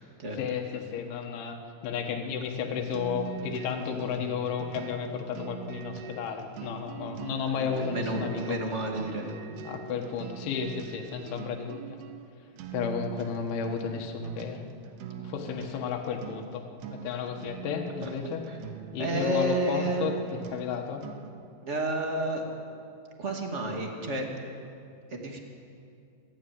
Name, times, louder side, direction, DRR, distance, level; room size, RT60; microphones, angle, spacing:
voice 1, 0.4-1.6 1.8-8.6 9.7-11.8 12.7-14.6 15.2-16.6 16.9-18.4 18.9-21.0, left 6 dB, 85° left, 2 dB, 4.0 m, -33 dB
sound 1, 2.9-21.5, right 8 dB, 70° right, 2.9 m, -43 dB
voice 2, 7.5-9.3 18.0-18.1 18.5-18.6 18.8-20.2 21.6-22.4 23.2-24.3 25.1-25.4, right 1 dB, 30° right, 1 dB, 1.2 m, -31 dB
26.5 x 14.5 x 9.4 m, 2.5 s
omnidirectional pair, 5.3 m